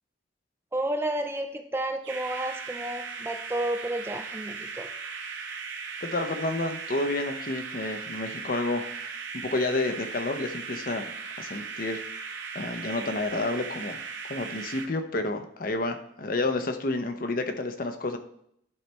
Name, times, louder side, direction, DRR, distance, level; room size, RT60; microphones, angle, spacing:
voice 1, 0.7-4.9, right 1 dB, 15° right, 6 dB, 0.4 m, -31 dB
sound 1, 2.0-14.9, right 5 dB, 75° right, 1.1 m, -38 dB
voice 2, 6.0-9.1 9.5-12.0 12.5-14.0 14.3-18.2, left 2 dB, 50° left, 6 dB, 0.7 m, -30 dB
11.0 x 4.3 x 3.4 m, 0.71 s
head